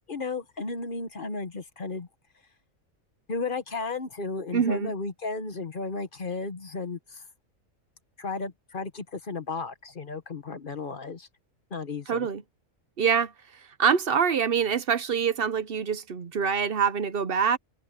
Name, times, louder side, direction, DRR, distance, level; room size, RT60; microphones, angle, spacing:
voice 1, 0.1-2.1 3.3-7.2 8.2-11.3 11.7-12.3, left 3 dB, 40° left, 1.3 m, -34 dB
voice 2, 4.5-4.9 12.1-12.4 13.0-13.3 13.8-17.6, right 7 dB, 50° right, 0.9 m, -25 dB
omnidirectional pair, 1.4 m